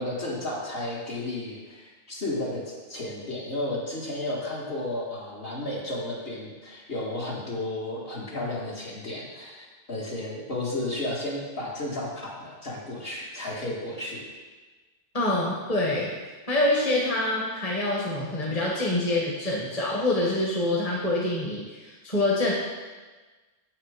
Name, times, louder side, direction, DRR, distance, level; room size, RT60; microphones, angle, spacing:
voice 1, 0.0-14.2, left 1 dB, 60° left, -5 dB, 2.0 m, -33 dB
voice 2, 15.1-16.1 16.5-22.5, left 2 dB, 35° left, -3 dB, 1.4 m, -26 dB
8.0 x 5.8 x 5.0 m, 1.3 s
omnidirectional pair, 1.2 m